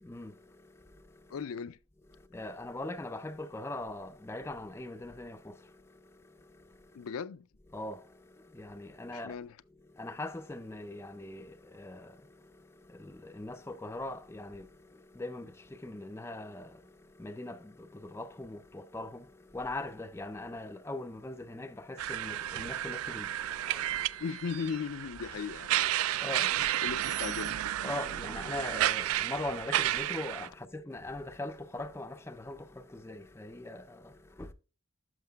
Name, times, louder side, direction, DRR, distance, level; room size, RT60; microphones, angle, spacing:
voice 1, 0.0-1.4 2.1-7.1 7.7-9.4 9.8-24.4 25.8-26.8 27.8-34.5, left 2 dB, 10° left, 0.4 m, -42 dB
voice 2, 1.3-1.8 6.9-7.5 9.1-9.5 24.2-25.9 26.8-27.7, left 6 dB, 85° left, 0.4 m, -37 dB
sound 1, 22.0-30.5, right 13 dB, 80° right, 0.3 m, -32 dB
12.0 x 5.8 x 2.2 m
head